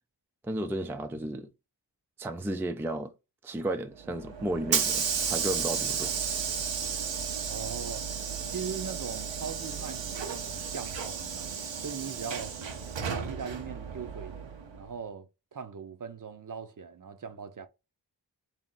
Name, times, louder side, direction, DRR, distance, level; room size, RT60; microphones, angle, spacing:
voice 1, 0.4-1.5 2.2-3.1 3.4-6.2, right 1 dB, 5° right, 0.4 m, -33 dB
Hiss / Sliding door, 4.0-14.9, right 6 dB, 85° right, 0.7 m, -33 dB
voice 2, 7.5-8.1 8.5-12.6 13.1-14.4 14.7-17.7, right 6 dB, 45° right, 0.6 m, -40 dB
3.4 x 2.6 x 3.8 m
cardioid pair, 50°, 44 cm